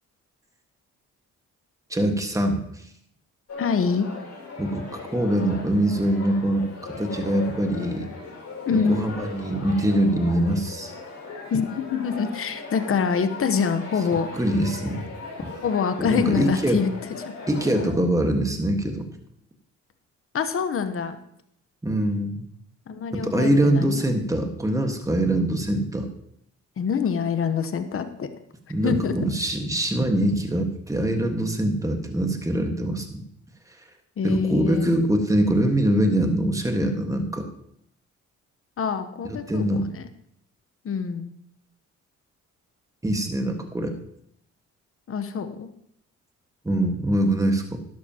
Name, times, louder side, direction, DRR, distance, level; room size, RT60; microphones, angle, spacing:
voice 1, 1.9-2.6 4.6-8.1 8.7-10.9 14.3-15.0 16.0-16.8 17.5-19.1 21.8-22.4 23.1-26.1 28.7-33.2 34.2-37.5 39.5-39.9 43.0-44.0 46.6-47.8, right 1 dB, 10° right, 5 dB, 1.6 m, -23 dB
crowd indoors bar, 3.5-17.9, left 4 dB, 60° left, 5.0 m, -38 dB
voice 2, 3.6-4.1 8.6-9.0 11.5-14.3 15.6-17.2 20.3-21.2 22.9-24.0 26.8-28.3 28.8-29.2 34.2-35.0 38.8-40.1 40.8-41.3 45.1-45.7, left 6 dB, 45° left, 10 dB, 1.0 m, -25 dB
12.0 x 11.0 x 2.9 m, 0.70 s
cardioid pair, 90°, 30 cm